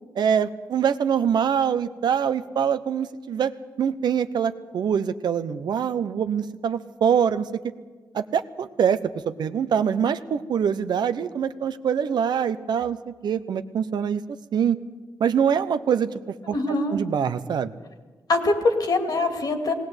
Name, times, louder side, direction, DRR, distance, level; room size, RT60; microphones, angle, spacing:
voice 1, 0.2-3.5 3.8-7.5 8.1-9.0 9.4-14.2 14.5-14.8 15.2-16.1 16.5-16.6 16.9-17.7, right 7 dB, 85° right, 11 dB, 0.8 m, -24 dB
voice 2, 16.5-17.0 18.3-19.7, left 2 dB, 65° left, 5 dB, 2.5 m, -23 dB
19.0 x 18.5 x 8.0 m, 1.4 s
cardioid pair, 85°, 7 cm